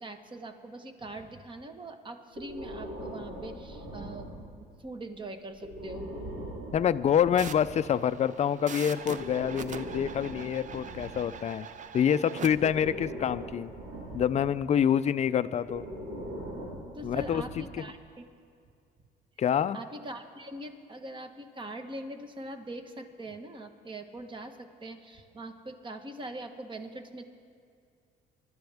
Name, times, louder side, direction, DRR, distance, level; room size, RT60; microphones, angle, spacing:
voice 1, 0.0-6.1 16.9-18.2 19.7-27.2, right 1 dB, 25° right, 6 dB, 1.3 m, -42 dB
Breathing, 2.3-4.8 5.5-7.9 9.0-11.8 12.4-14.6 15.6-17.9, equal, 80° right, 3.3 m, -41 dB
voice 2, 6.7-11.7 11.9-13.7 14.1-15.9 17.0-17.8 19.4-19.8, left 9 dB, 40° left, 13 dB, 0.5 m, -27 dB
sound 1, 7.4-12.5, right 7 dB, 45° right, 0.6 m, -43 dB
24.0 x 12.5 x 3.5 m, 2.3 s
cardioid pair, 105°, 18 cm